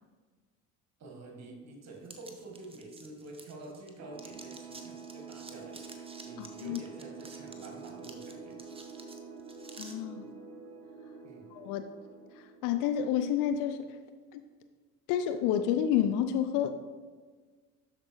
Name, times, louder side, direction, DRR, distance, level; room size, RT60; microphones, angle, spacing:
voice 1, 1.0-8.6 11.2-11.5, right 2 dB, 35° right, 1 dB, 1.6 m, -48 dB
sound 1, 2.0-3.9 4.2-9.9, right 3 dB, 15° right, 0.8 m, -51 dB
sound 2, 4.0-13.3, right 5 dB, 90° right, 0.5 m, -47 dB
voice 2, 6.4-6.8 9.8-10.2 11.5-11.9 12.6-14.0 14.3-14.4 15.1-16.7, left 9 dB, 50° left, 9 dB, 0.5 m, -29 dB
12.5 x 4.4 x 3.1 m, 1.4 s
figure-of-eight pair, 55°, 43 cm